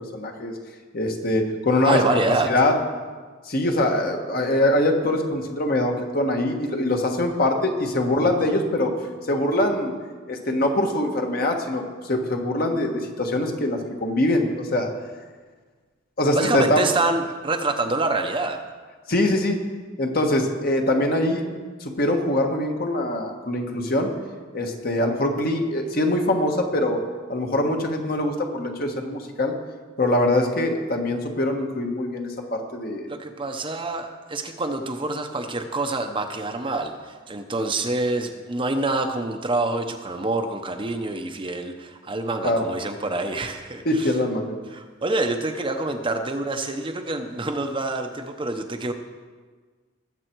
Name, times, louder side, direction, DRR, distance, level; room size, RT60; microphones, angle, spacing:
voice 1, 0.1-0.5 0.9-2.0 2.4-2.7 3.4-8.9 9.3-9.9 10.3-14.9 16.2-16.8 19.1-19.6 20.0-21.4 21.8-24.1 24.5-27.0 27.3-29.5 30.0-33.1 42.4-42.7 43.8-44.6, left 1 dB, 50° left, 2 dB, 1.5 m, -23 dB
voice 2, 1.8-2.5 16.3-18.6 33.1-44.1 44.7-48.9, right 2 dB, 25° right, 5 dB, 0.8 m, -26 dB
19.5 x 7.7 x 4.6 m, 1.5 s
head